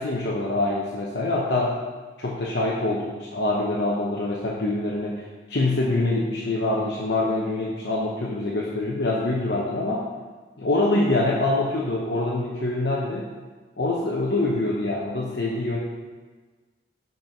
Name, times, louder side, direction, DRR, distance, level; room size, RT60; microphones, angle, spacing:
voice 1, 0.0-1.8 2.2-5.2 5.5-10.1 10.6-13.2 13.8-15.8, left 2 dB, 65° left, -4 dB, 0.8 m, -25 dB
5.5 x 4.5 x 5.8 m, 1.4 s
head